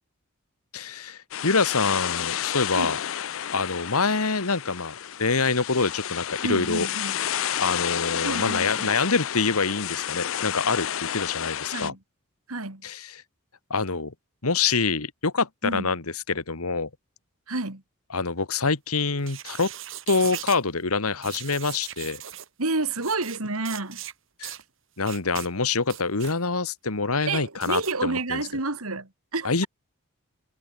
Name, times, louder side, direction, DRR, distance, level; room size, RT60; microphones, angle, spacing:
voice 1, 0.7-3.0 3.5-6.9 7.6-11.9 12.8-13.2 13.7-14.1 14.4-16.9 18.1-19.7 20.1-22.2 24.4-24.5 25.0-28.5 29.4-29.7, left 4 dB, 85° left, 1.8 m, -26 dB
sound 1, 1.3-11.9, left 10 dB, 65° left, 0.5 m, -31 dB
voice 2, 6.4-7.2 8.1-8.9 11.7-12.0 12.5-12.8 15.6-15.9 17.5-17.8 22.6-24.0 27.3-29.7, right 3 dB, 80° right, 2.7 m, -29 dB
sound 2, 19.2-20.6 21.2-22.5 23.0-23.4 23.6-24.1 24.4-24.6 25.0-25.5 25.8-26.4 27.6-27.9, right 12 dB, 60° right, 4.3 m, -38 dB
head